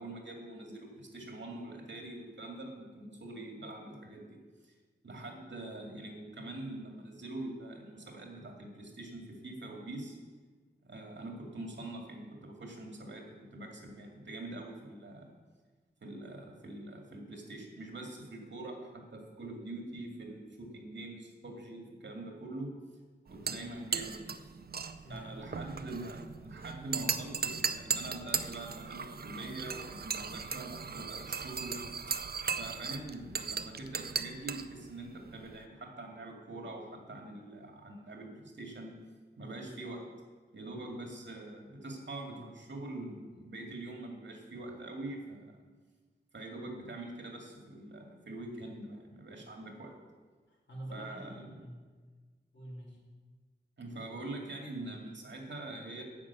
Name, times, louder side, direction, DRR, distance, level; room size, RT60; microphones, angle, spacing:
voice 1, 0.0-4.7 5.0-10.2 10.8-15.3 16.0-22.7 23.3-24.3 25.1-31.8 32.6-38.9 39.4-40.0 40.5-45.6 46.3-49.9 50.9-51.6 53.8-56.0, right 2 dB, 85° right, 1 dB, 2.3 m, -44 dB
sound 1, 23.3-35.6, right 5 dB, 60° right, 0.5 m, -38 dB
voice 2, 25.0-25.5 39.4-39.8 40.7-40.8 50.5-51.9 52.5-53.0, right 1 dB, 85° left, -3 dB, 3.2 m, -47 dB
9.7 x 6.4 x 8.3 m, 1.4 s
wide cardioid pair, 95°, 18 cm